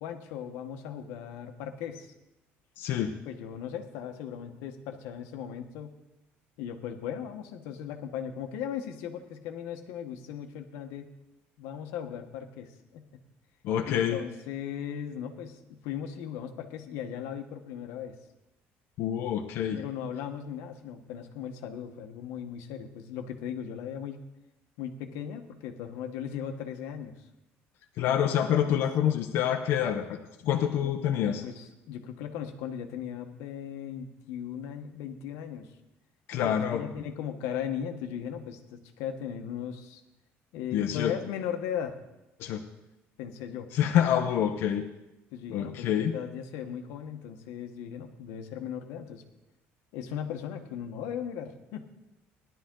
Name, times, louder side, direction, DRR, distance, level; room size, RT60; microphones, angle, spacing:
voice 1, 0.0-2.1 3.3-5.9 6.6-11.1 11.6-13.1 13.8-18.2 19.7-24.2 24.8-27.3 28.0-28.2 28.7-28.8 30.4-35.7 36.4-40.0 40.5-42.0 43.2-43.7 45.3-49.2 49.9-51.9, left 8 dB, 90° left, 5 dB, 1.3 m, -38 dB
voice 2, 2.8-3.1 13.6-14.2 19.0-19.8 28.0-30.2 30.5-31.4 36.3-36.8 40.7-41.1 42.4-42.6 43.7-44.8 45.5-46.1, left 9 dB, 55° left, 4 dB, 0.8 m, -27 dB
17.0 x 11.5 x 3.9 m, 0.95 s
cardioid pair, 180°, 5 cm